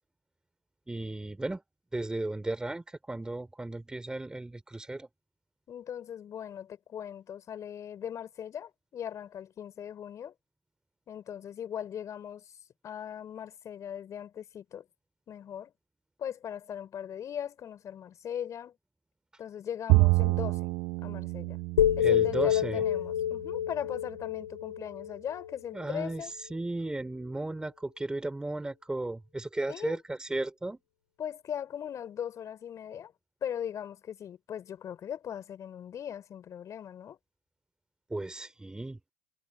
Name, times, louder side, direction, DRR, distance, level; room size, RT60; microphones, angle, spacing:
voice 1, 0.9-1.6 1.9-5.1 22.0-22.8 25.7-30.8 38.1-39.0, right 2 dB, 10° right, 3.0 m, -35 dB
voice 2, 5.7-10.3 11.1-12.4 12.8-14.8 15.3-15.7 16.2-18.7 19.4-20.7 21.0-21.6 22.0-26.3 29.7-30.0 31.2-33.1 33.4-37.2, left 9 dB, 40° left, 4.8 m, -39 dB
Bowed string instrument, 19.9-23.3, right 24 dB, 60° right, 0.8 m, -28 dB
sound 1, 21.8-25.9, left 10 dB, 85° left, 3.4 m, -28 dB
hypercardioid pair, 75°, 8 cm